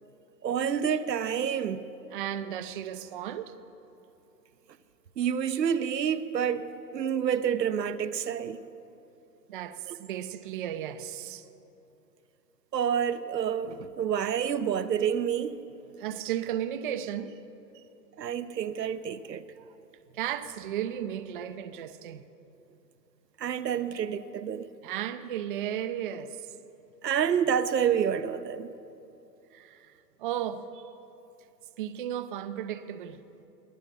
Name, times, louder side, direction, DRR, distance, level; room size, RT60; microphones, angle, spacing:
voice 1, 0.4-1.9 5.2-6.7 6.9-8.6 9.9-10.0 12.7-15.6 18.2-19.4 23.4-24.7 27.0-28.7, right 8 dB, 80° right, 0.9 m, -28 dB
voice 2, 2.1-3.6 9.5-11.5 16.0-17.4 17.7-17.8 19.6-19.8 20.1-22.2 24.8-26.5 29.5-29.9 30.2-30.8 31.8-33.2, right 10 dB, 35° right, 0.5 m, -35 dB
20.5 x 8.9 x 6.7 m
hypercardioid pair, 125°, 50 cm